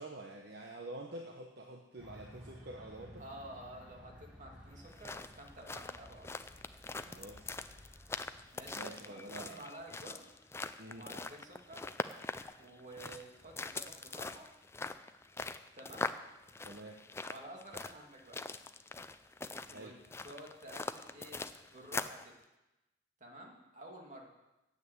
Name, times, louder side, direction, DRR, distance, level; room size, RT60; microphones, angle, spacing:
voice 1, 0.0-3.2 7.1-7.5 8.7-9.7 10.8-11.1 16.6-17.0 19.7-20.0, right 2 dB, 60° right, 2 dB, 1.0 m, -47 dB
sound 1, 2.0-8.7, equal, 5° right, 2.0 m, -56 dB
voice 2, 3.2-6.3 8.5-10.3 10.9-11.8 12.6-14.5 15.7-16.1 17.2-18.4 19.7-19.9 20.2-22.3 23.2-24.3, right 1 dB, 45° right, 0 dB, 2.3 m, -51 dB
sound 2, 4.8-22.3, left 3 dB, 15° left, 0.4 m, -43 dB
9.7 x 8.1 x 8.1 m, 0.99 s
head